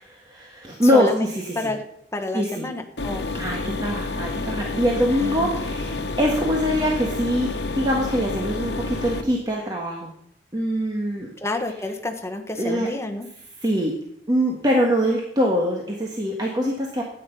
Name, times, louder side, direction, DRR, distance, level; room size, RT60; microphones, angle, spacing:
voice 1, 0.1-1.7 2.3-2.7 3.3-10.1 10.5-11.3 12.6-12.9 13.6-13.9 14.3-17.0, equal, 25° right, -1 dB, 1.5 m, -23 dB
voice 2, 0.9-1.3 1.5-1.8 2.1-3.4 5.2-5.5 11.4-13.3, left 2 dB, 15° left, 4 dB, 1.3 m, -29 dB
sound 1, 3.0-9.2, left 3 dB, 75° left, 1.3 m, -29 dB
13.0 x 9.2 x 5.5 m, 0.71 s
head